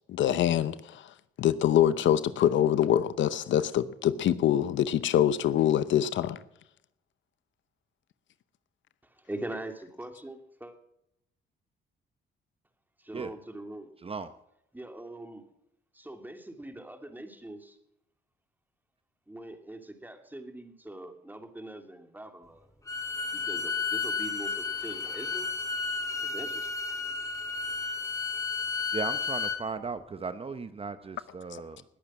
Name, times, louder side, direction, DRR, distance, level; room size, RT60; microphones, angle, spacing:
voice 1, 0.1-1.0 1.4-6.4, left 10 dB, 70° left, 0.8 m, -24 dB
voice 2, 9.0-10.7 13.0-13.9 14.7-15.5 15.9-17.8 19.3-22.7 23.3-25.5 26.2-26.7, right 1 dB, 10° right, 2.6 m, -42 dB
Bowed string instrument, 22.9-29.6, left 5 dB, 15° left, 2.1 m, -32 dB
voice 3, 28.9-31.8, right 4 dB, 30° right, 0.8 m, -36 dB
20.0 x 8.6 x 6.1 m
cardioid pair, 90°, 20 cm